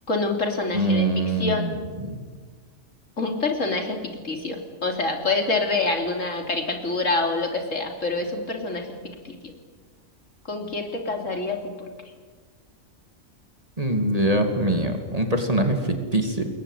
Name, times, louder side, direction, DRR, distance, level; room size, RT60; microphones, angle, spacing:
voice 1, 0.1-1.7 3.2-8.9 9.3-9.4 10.5-11.9, left 3 dB, 65° left, 3 dB, 3.4 m, -26 dB
voice 2, 0.7-1.7 2.0-2.2 13.8-16.5, right 1 dB, 25° right, 5 dB, 2.7 m, -23 dB
28.0 x 21.5 x 8.3 m, 1.5 s
omnidirectional pair, 1.4 m